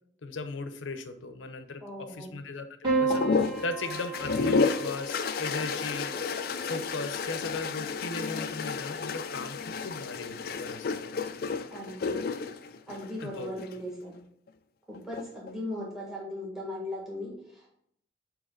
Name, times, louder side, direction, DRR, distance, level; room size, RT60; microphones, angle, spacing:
voice 1, 0.2-3.2 3.6-6.1 6.6-11.0 13.2-13.5, left 3 dB, 90° left, 9 dB, 0.7 m, -37 dB
voice 2, 1.8-2.4 11.7-12.2 12.9-14.2 14.9-17.7, left 1 dB, 5° right, -4 dB, 1.6 m, -38 dB
Piano, 2.8-7.3 8.5-9.2, right 4 dB, 25° right, 2.6 m, -34 dB
sound 1, 3.1-13.8 14.9-15.5, left 4 dB, 50° left, 0.3 m, -31 dB
8.6 x 3.1 x 3.8 m, 0.70 s
head